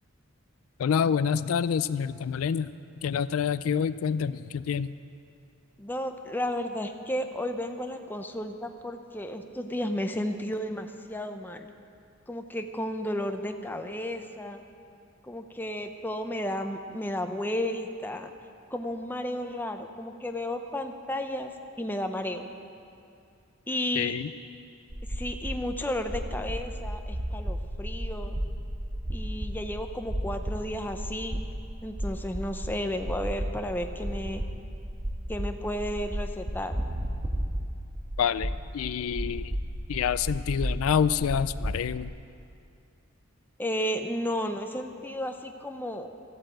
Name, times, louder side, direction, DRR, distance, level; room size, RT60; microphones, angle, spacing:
voice 1, 0.8-2.7 3.0-4.9 24.0-24.3 38.2-39.6 39.9-42.1, left 7 dB, 85° left, 15 dB, 0.4 m, -27 dB
voice 2, 5.8-11.7 12.3-14.6 15.2-18.3 18.7-21.5 21.8-22.4 23.7-24.1 25.1-28.4 29.1-31.4 31.8-34.4 35.3-36.8 43.6-46.1, left 1 dB, 10° left, 6 dB, 0.6 m, -33 dB
sound 1, 24.9-42.0, equal, 30° right, 1.2 m, -34 dB
14.0 x 8.7 x 7.9 m, 2.5 s
head